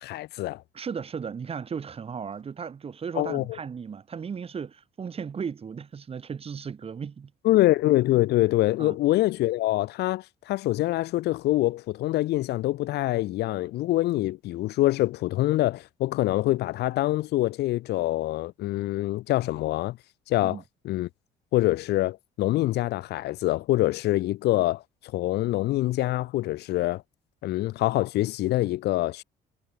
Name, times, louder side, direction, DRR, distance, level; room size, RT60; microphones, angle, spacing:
voice 1, 0.0-0.6 3.2-3.4 7.4-20.0 20.3-21.1 21.5-24.8 25.1-27.0 27.4-29.2, left 16 dB, 80° left, 2.7 m, -25 dB
voice 2, 0.7-7.3 8.8-9.0 20.4-20.6, right 6 dB, 35° right, 2.9 m, -36 dB
cardioid pair, 110°, 17 cm